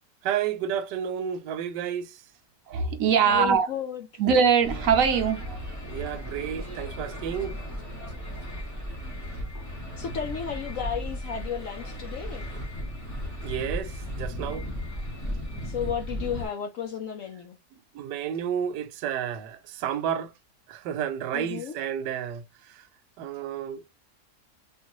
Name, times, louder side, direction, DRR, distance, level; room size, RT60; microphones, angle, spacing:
voice 1, 0.2-2.2 5.9-7.5 13.4-14.7 17.9-20.3 20.7-22.4 23.2-23.8, right 9 dB, 90° right, 1.2 m, -31 dB
voice 2, 2.7-3.7 4.2-5.6, right 6 dB, 65° right, 0.9 m, -21 dB
voice 3, 3.2-4.1 10.0-12.5 15.6-17.6 21.3-21.8, left 8 dB, 70° left, 0.8 m, -33 dB
sound 1, 4.6-16.5, equal, 15° left, 0.6 m, -35 dB
3.7 x 2.5 x 2.9 m
omnidirectional pair, 1.8 m